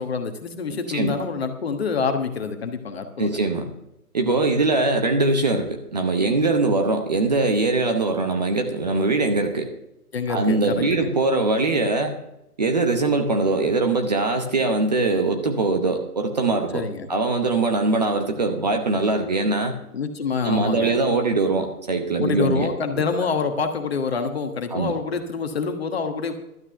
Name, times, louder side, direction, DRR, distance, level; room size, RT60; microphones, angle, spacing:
voice 1, 0.0-3.4 10.1-11.1 16.7-17.1 19.9-20.9 22.2-26.4, left 5 dB, 40° left, 6 dB, 1.4 m, -26 dB
voice 2, 3.2-3.7 4.1-9.7 10.3-12.2 12.6-19.7 20.4-22.7 24.7-24.9, right 3 dB, 25° right, 4 dB, 0.9 m, -22 dB
12.5 x 8.7 x 5.7 m, 0.85 s
figure-of-eight pair, 155°, 46 cm